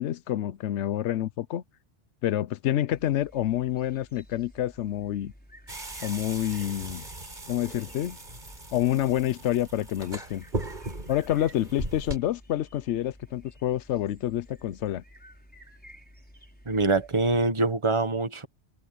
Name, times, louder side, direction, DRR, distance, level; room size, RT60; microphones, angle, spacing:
voice 1, 0.0-1.6 2.2-5.3 6.0-7.0 7.5-8.2 8.7-10.4 11.1-15.0, left 12 dB, 85° left, 0.9 m, -28 dB
sound 1, 2.9-17.5, equal, 10° left, 5.5 m, -53 dB
sound 2, 5.7-12.2, right 2 dB, 45° right, 4.3 m, -38 dB
voice 2, 16.7-18.5, right 3 dB, 25° right, 1.5 m, -24 dB
omnidirectional pair, 1.2 m